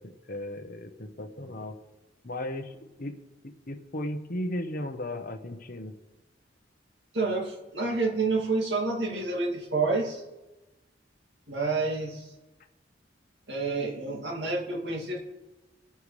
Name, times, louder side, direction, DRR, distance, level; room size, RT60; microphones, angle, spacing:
voice 1, 0.0-1.8 2.2-3.2 3.4-5.9, left 1 dB, 50° left, 6 dB, 1.1 m, -36 dB
voice 2, 7.1-10.2 11.5-12.3 13.5-15.2, right 3 dB, 65° right, 0 dB, 2.3 m, -29 dB
26.5 x 9.2 x 3.3 m, 1.1 s
head